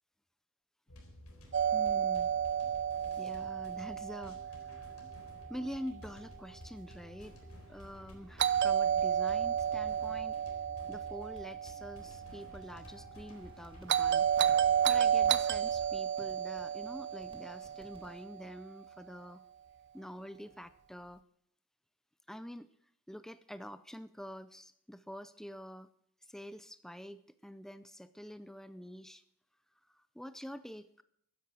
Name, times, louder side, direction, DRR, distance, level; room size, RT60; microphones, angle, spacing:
sound 1, 0.9-15.9, equal, 80° left, 4.0 m, -53 dB
Doorbell, 1.5-5.5 8.4-12.6 13.9-18.3, right 9 dB, 50° right, 0.6 m, -31 dB
voice 1, 1.7-2.3 3.2-5.0 5.5-7.4 7.7-10.4 10.9-14.3 14.8-19.4 19.9-21.2 22.3-22.7 23.1-25.9 26.2-29.2 29.9-31.0, equal, ahead, 12 dB, 0.5 m, -46 dB
sound 2, 13.3-18.3, equal, 25° right, 2.2 m, -60 dB
14.5 x 10.5 x 6.2 m, 0.71 s
head